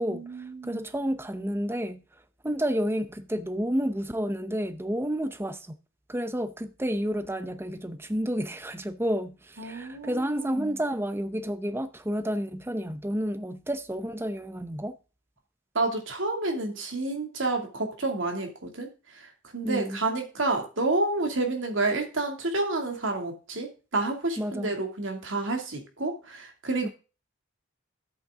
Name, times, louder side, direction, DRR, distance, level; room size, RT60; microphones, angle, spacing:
voice 1, 0.1-0.8 9.6-10.8 15.7-26.9, right 2 dB, 65° right, 2.5 m, -30 dB
voice 2, 0.6-2.0 2.4-5.8 6.1-15.0 19.6-20.0 24.4-24.7 26.8-26.9, equal, 10° right, 0.7 m, -30 dB
10.5 x 8.3 x 3.7 m
head